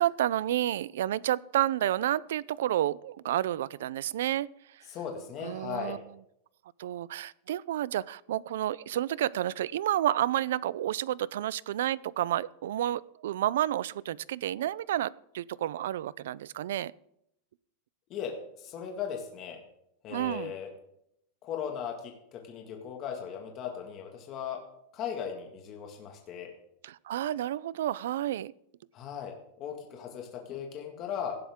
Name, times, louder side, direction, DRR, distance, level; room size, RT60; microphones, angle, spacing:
voice 1, 0.0-4.8 5.4-6.0 6.8-16.9 20.1-20.5 26.8-28.5, right 12 dB, 80° right, 22 dB, 0.5 m, -30 dB
voice 2, 4.9-6.0 18.1-19.6 20.0-20.7 21.4-24.6 24.9-26.5 28.9-31.4, left 8 dB, 25° left, 1 dB, 2.0 m, -38 dB
17.5 x 11.5 x 3.7 m, 0.74 s
supercardioid pair, 180°, 0 cm